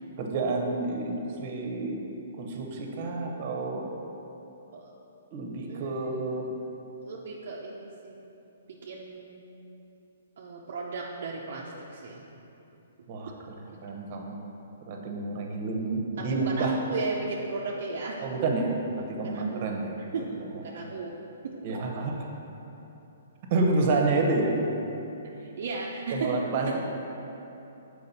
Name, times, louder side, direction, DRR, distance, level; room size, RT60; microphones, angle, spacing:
voice 1, 0.2-2.0 2.4-3.9 5.3-6.6 13.1-13.3 13.8-14.4 14.9-16.8 18.2-19.9 20.8-20.9 21.6-22.1 23.5-24.5 26.1-26.8, right 3 dB, 40° right, 1 dB, 1.0 m, -29 dB
voice 2, 5.7-6.6 7.0-8.3 8.7-9.4 10.4-12.3 13.9-14.0 16.2-18.2 19.2-19.7 20.1-20.3 20.6-21.6 25.3-26.3 26.6-26.8, right 3 dB, 60° right, -3 dB, 0.6 m, -35 dB
6.6 x 4.8 x 4.2 m, 3.0 s
hypercardioid pair, 140°, 0 cm